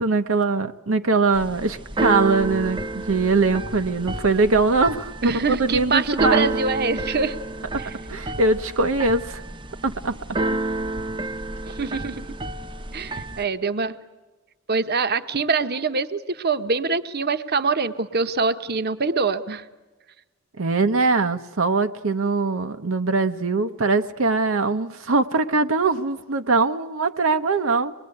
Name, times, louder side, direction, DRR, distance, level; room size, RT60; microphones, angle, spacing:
voice 1, 0.0-6.5 8.1-9.4 9.8-10.2 20.6-27.9, right 3 dB, 75° right, 8 dB, 0.9 m, -22 dB
Keyboard (musical), 1.3-13.4, right 2 dB, 25° right, 0.8 m, -30 dB
voice 2, 5.2-7.4 7.8-7.9 11.7-12.3 12.9-14.0 14.7-19.6, right 4 dB, 50° right, 10 dB, 1.0 m, -24 dB
25.0 x 21.0 x 9.7 m, 1.2 s
head